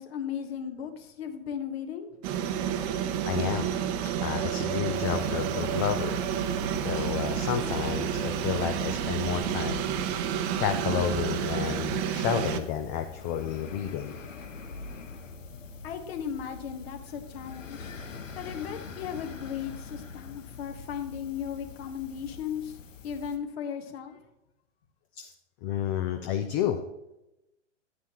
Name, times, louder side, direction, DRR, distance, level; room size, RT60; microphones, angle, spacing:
voice 1, 0.0-2.1 15.8-17.9 18.4-22.8 23.0-24.2, left 8 dB, 55° left, 6 dB, 1.5 m, -36 dB
sound 1, 2.2-12.6, right 9 dB, 35° right, 0.8 m, -30 dB
voice 2, 3.2-3.7 4.2-6.2 6.8-9.8 10.6-14.1 17.8-18.0 25.2-25.3 25.6-26.8, left 10 dB, 25° left, 7 dB, 0.5 m, -31 dB
sound 2, 4.9-23.4, left 4 dB, 85° left, 1.3 m, -43 dB
10.5 x 9.5 x 3.0 m, 0.92 s
hypercardioid pair, 130°, 37 cm